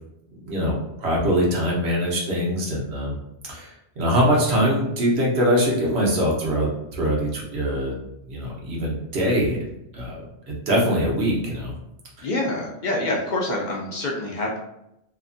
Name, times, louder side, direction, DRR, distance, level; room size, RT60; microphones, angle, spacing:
voice 1, 0.4-3.2 3.5-8.0 8.3-9.7 9.9-11.7 12.2-12.3, equal, 85° right, -3 dB, 1.1 m, -23 dB
voice 2, 12.2-14.6, left 2 dB, 55° left, -2 dB, 0.6 m, -26 dB
2.8 x 2.5 x 2.5 m, 0.84 s
omnidirectional pair, 1.1 m